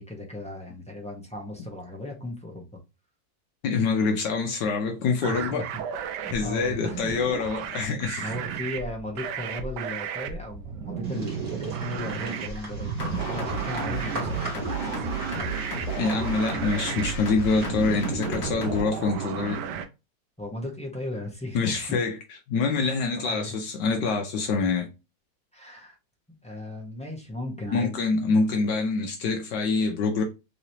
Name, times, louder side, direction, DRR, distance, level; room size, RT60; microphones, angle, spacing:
voice 1, 0.0-2.7 5.2-5.8 6.2-7.2 8.2-15.6 20.4-21.9 23.1-23.6 25.5-26.0 26.4-27.9, left 1 dB, 10° left, 0.4 m, -36 dB
voice 2, 3.6-5.6 6.3-8.3 16.0-19.6 21.5-24.9 27.7-30.2, left 4 dB, 75° left, 1.3 m, -26 dB
sound 1, 5.2-19.9, right 7 dB, 75° right, 1.1 m, -34 dB
sound 2, 11.0-18.3, right 1 dB, 30° right, 1.8 m, -42 dB
sound 3, 13.0-18.8, right 2 dB, 55° left, 1.3 m, -33 dB
3.8 x 3.1 x 2.7 m
omnidirectional pair, 2.0 m